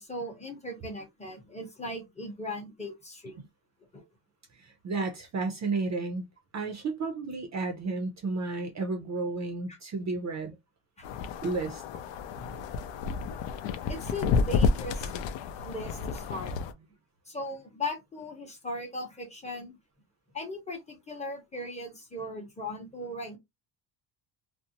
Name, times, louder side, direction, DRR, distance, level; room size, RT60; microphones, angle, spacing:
voice 1, 0.0-3.5 3.9-4.0 9.7-9.8 11.0-11.1 12.3-12.6 13.9-15.1 15.6-16.6 17.3-19.8 20.3-23.4, left 1 dB, 15° left, 0.7 m, -38 dB
voice 2, 4.5-6.2 6.5-10.5 11.4-11.8, right 3 dB, 35° right, 0.5 m, -32 dB
sound 1, 11.0-16.7, left 5 dB, 65° left, 0.5 m, -30 dB
2.5 x 2.0 x 2.7 m
cardioid pair, 140°, 48 cm